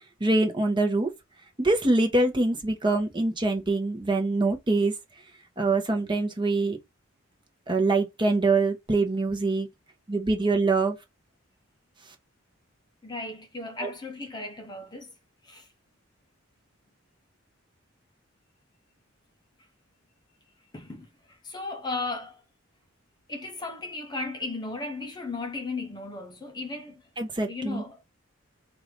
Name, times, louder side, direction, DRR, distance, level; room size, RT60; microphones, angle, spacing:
voice 1, 0.2-1.1 1.6-4.9 5.6-6.8 7.7-9.7 10.1-11.0 13.8-13.9 27.2-27.8, right 2 dB, 25° right, 0.9 m, -24 dB
voice 2, 13.0-15.1 15.4-15.7 20.7-22.4 23.3-27.1 27.5-28.1, left 3 dB, 20° left, 0.6 m, -36 dB
4.8 x 2.5 x 3.2 m
head